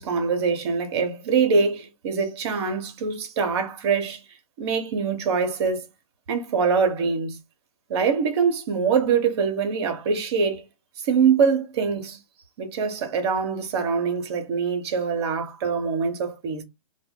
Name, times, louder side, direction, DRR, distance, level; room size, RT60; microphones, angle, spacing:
voice 1, 0.0-4.2 4.6-5.9 6.3-7.4 7.9-10.6 11.0-12.2 12.6-16.6, right 5 dB, 45° right, 0.8 m, -24 dB
2.1 x 2.0 x 3.6 m
hypercardioid pair, 125°, 19 cm